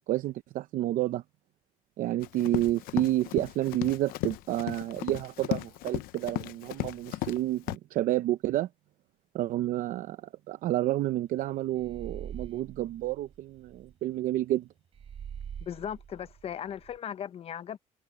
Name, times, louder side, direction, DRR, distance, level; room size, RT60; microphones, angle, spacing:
voice 1, 0.1-1.2 2.0-8.7 9.3-14.7, right 14 dB, 70° right, 0.7 m, -30 dB
Run, 2.2-7.4 7.7-7.8, left 17 dB, 90° left, 0.7 m, -35 dB
sound 1, 11.8-13.9 14.9-17.0, right 8 dB, 45° right, 3.3 m, -44 dB
voice 2, 15.6-17.8, left 9 dB, 45° left, 0.7 m, -37 dB
cardioid pair, 130°, 15 cm